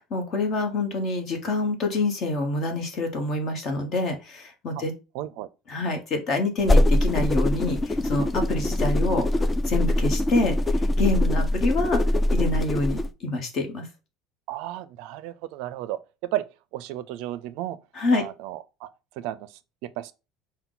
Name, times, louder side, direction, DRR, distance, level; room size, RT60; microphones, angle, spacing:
voice 1, 0.0-4.9 5.7-12.0 12.3-13.9 17.9-18.2, left 2 dB, 40° left, 1.2 m, -27 dB
voice 2, 5.1-5.5 14.5-16.4 16.7-17.8 18.1-18.9 19.2-20.1, right 14 dB, 70° right, 0.4 m, -33 dB
sound 1, 6.6-13.1, left 1 dB, 15° left, 0.3 m, -23 dB
5.7 x 2.2 x 3.7 m
cardioid pair, 140°, 0 cm